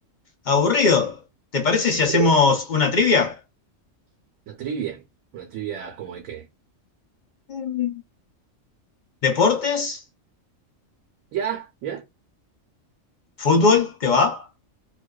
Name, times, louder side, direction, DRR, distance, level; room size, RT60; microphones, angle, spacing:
voice 1, 0.5-1.2 1.5-3.4 7.5-8.0 9.2-10.0 13.4-14.5, left 4 dB, 55° left, 0.5 m, -20 dB
voice 2, 4.5-5.0 5.3-6.5 11.3-12.0, right 8 dB, 80° right, 1.0 m, -30 dB
2.4 x 2.2 x 2.2 m
omnidirectional pair, 1.4 m